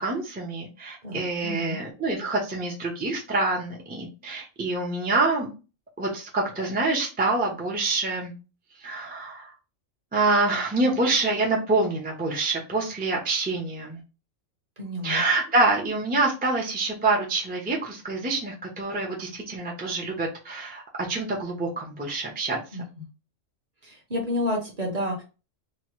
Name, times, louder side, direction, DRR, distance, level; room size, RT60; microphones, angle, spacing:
voice 1, 0.0-5.5 6.0-8.3 8.8-9.5 10.1-14.0 15.0-22.6, right 3 dB, 15° right, -2 dB, 0.3 m, -26 dB
voice 2, 1.0-1.8 14.8-15.2 22.7-23.0 23.8-25.2, left 1 dB, 40° right, 1 dB, 0.7 m, -30 dB
2.9 x 2.1 x 3.0 m, 0.31 s
omnidirectional pair, 1.3 m